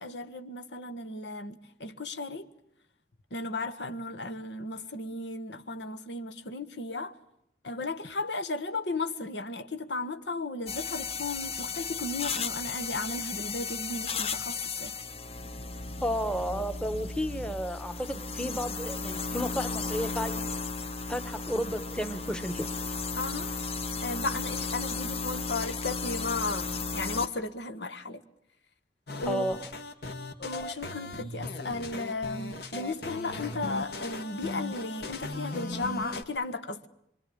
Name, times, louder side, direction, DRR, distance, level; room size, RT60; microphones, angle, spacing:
voice 1, 0.0-2.5 3.3-7.2 7.6-14.9 23.1-23.5 24.0-28.2 29.2-29.4 30.4-36.9, left 3 dB, 85° left, 1.7 m, -35 dB
sound 1, 10.7-27.3, left 4 dB, 35° left, 1.0 m, -35 dB
voice 2, 16.0-20.5 21.1-22.7 29.3-29.7, equal, 5° left, 1.1 m, -32 dB
sound 2, 29.1-36.2, left 2 dB, 65° left, 2.2 m, -38 dB
25.5 x 24.5 x 8.7 m
head